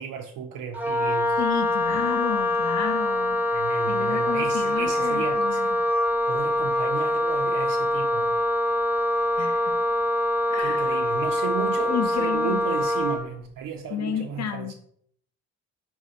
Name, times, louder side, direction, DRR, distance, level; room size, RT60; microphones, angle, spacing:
voice 1, 0.0-1.4 3.5-5.6 6.3-8.4 10.6-14.7, right 7 dB, 50° right, 0.5 m, -34 dB
Wind instrument woodwind instrument, 0.7-13.2, left 1 dB, 5° right, 0.7 m, -24 dB
voice 2, 1.4-3.4 3.9-5.8 9.4-9.8 10.5-11.0 11.9-12.8 13.9-14.7, left 9 dB, 35° left, 0.7 m, -31 dB
4.2 x 2.4 x 4.0 m
figure-of-eight pair, 40°, 46 cm